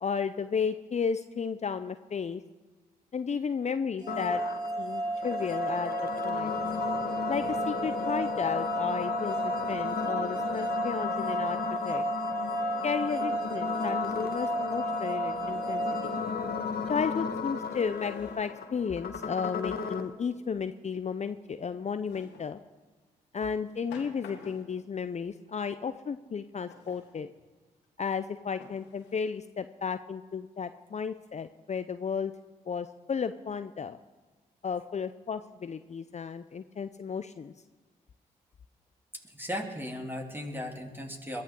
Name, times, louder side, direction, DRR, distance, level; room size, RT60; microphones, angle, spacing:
voice 1, 0.0-2.4 3.1-4.4 4.8-5.9 6.2-6.6 7.3-12.0 12.8-16.2 16.9-22.6 23.3-27.3 28.0-32.3 32.7-34.0 34.6-37.5, left 6 dB, 40° left, 10 dB, 0.6 m, -33 dB
sound 1, 4.0-17.0, right 2 dB, 25° right, 4.9 m, -33 dB
sound 2, 4.1-20.1, left 6 dB, 60° left, 1.5 m, -35 dB
Drawer open or close, 17.8-18.7 19.4-20.2 22.1-22.5 23.4-24.8 26.7-27.1 27.8-27.9 28.6-29.2, left 5 dB, 85° left, 2.0 m, -52 dB
voice 2, 39.1-41.4, equal, 10° right, 1 dB, 3.4 m, -37 dB
22.0 x 13.5 x 3.8 m, 1.3 s
hypercardioid pair, 45°, 18 cm